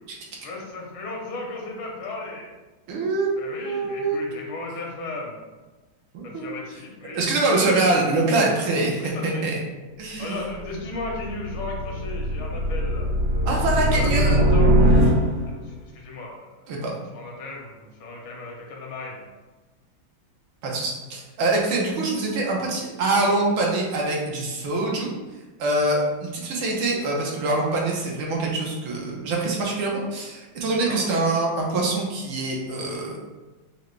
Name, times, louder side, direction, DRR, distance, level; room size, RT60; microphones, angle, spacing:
voice 1, 0.4-2.5 3.4-5.4 6.2-7.2 9.0-9.5 10.2-13.1 13.9-14.7 15.6-16.7 17.1-19.3 30.7-31.1, left 3 dB, 90° left, -1 dB, 1.8 m, -35 dB
voice 2, 2.9-3.3 3.7-4.2 6.1-6.5 7.1-9.6 10.0-10.4 10.7-10.8 13.5-14.4 16.7-16.9 20.6-25.1 25.6-33.2, right 2 dB, 90° right, -2 dB, 1.8 m, -24 dB
sound 1, 10.4-15.7, equal, 45° right, 0.8 m, -21 dB
6.3 x 2.2 x 3.1 m, 1.2 s
omnidirectional pair, 2.2 m